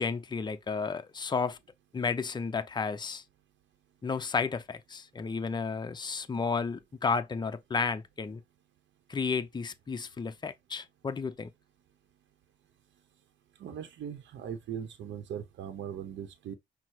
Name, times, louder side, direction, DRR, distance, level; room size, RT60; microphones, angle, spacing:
voice 1, 0.0-1.6 1.9-3.2 4.0-8.4 9.1-11.5, left 5 dB, 20° left, 0.6 m, -32 dB
voice 2, 13.6-16.5, right 8 dB, 65° right, 0.8 m, -39 dB
5.5 x 2.0 x 4.7 m
cardioid pair, 90°, 20 cm